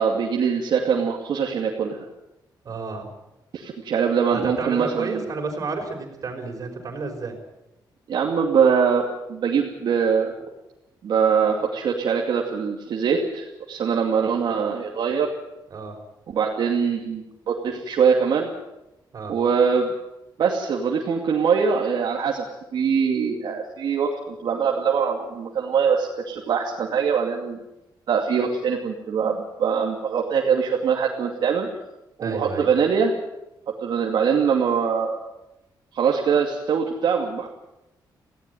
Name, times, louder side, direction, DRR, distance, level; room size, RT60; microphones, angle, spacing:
voice 1, 0.0-2.1 3.5-5.2 8.1-10.3 11.0-15.3 16.3-18.5 19.3-19.9 20.4-22.5 22.7-27.6 28.1-31.7 32.2-33.1 33.8-35.2 35.9-37.5, right 6 dB, 65° right, -1 dB, 2.5 m, -23 dB
voice 2, 2.6-3.1 4.3-7.4 15.7-16.0 19.1-19.4 32.2-32.7, right 4 dB, 45° right, 3 dB, 5.3 m, -31 dB
18.5 x 16.5 x 9.3 m, 0.93 s
wide cardioid pair, 145°, 8 cm